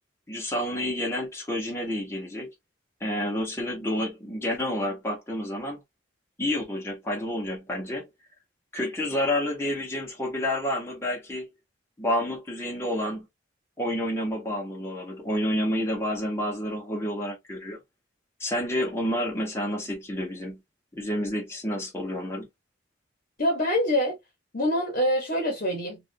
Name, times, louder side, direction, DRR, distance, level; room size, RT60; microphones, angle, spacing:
voice 1, 0.3-2.5 3.0-5.8 6.4-8.1 8.7-11.5 12.0-13.3 13.8-17.8 18.4-20.6 20.9-22.5, left 1 dB, 15° left, 1.0 m, -29 dB
voice 2, 23.4-24.2 24.5-26.0, equal, 45° left, 1.1 m, -25 dB
3.3 x 2.6 x 2.6 m
head